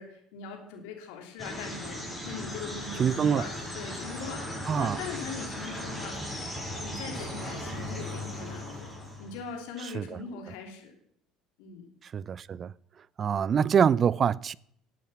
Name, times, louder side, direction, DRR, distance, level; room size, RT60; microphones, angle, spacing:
voice 1, 0.0-6.2 6.7-8.9 9.2-10.9 11.6-11.9, left 5 dB, 75° left, 3.1 m, -41 dB
sound 1, 1.4-9.5, left 1 dB, ahead, 6.6 m, -37 dB
voice 2, 3.0-3.5 4.7-5.0 9.9-10.2 12.1-12.7 13.2-14.5, right 7 dB, 40° right, 0.4 m, -25 dB
14.0 x 8.6 x 5.9 m
hypercardioid pair, 75°, 0 cm